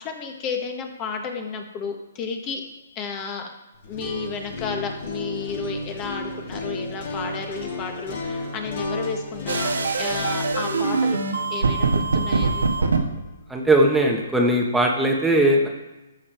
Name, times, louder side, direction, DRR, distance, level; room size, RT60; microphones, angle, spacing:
voice 1, 0.0-2.6 2.9-3.5 3.9-11.2 11.5-12.9, left 5 dB, 30° left, 4 dB, 1.4 m, -32 dB
sound 1, 3.7-13.8, left 2 dB, 55° left, 3.8 m, -33 dB
sound 2, 9.5-13.0, right 4 dB, 85° right, 1.4 m, -23 dB
voice 2, 13.5-15.7, right 1 dB, 5° right, 0 dB, 1.2 m, -19 dB
12.5 x 6.6 x 4.5 m, 1.0 s
hypercardioid pair, 145°, 0 cm